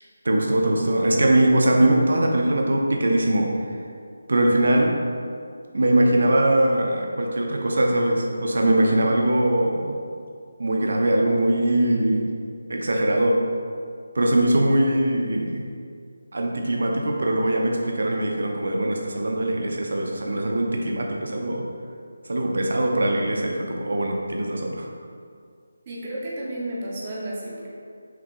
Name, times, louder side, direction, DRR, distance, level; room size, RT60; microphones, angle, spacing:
voice 1, 0.2-3.5 4.3-4.9 5.7-9.9 10.6-12.3 12.7-13.4 14.1-15.6 16.3-21.6 22.3-24.9, right 1 dB, 60° right, 1 dB, 0.6 m, -21 dB
voice 2, 25.9-27.7, right 1 dB, 20° right, -4 dB, 0.5 m, -32 dB
5.8 x 2.7 x 3.0 m, 2.3 s
figure-of-eight pair, 180°, 0 cm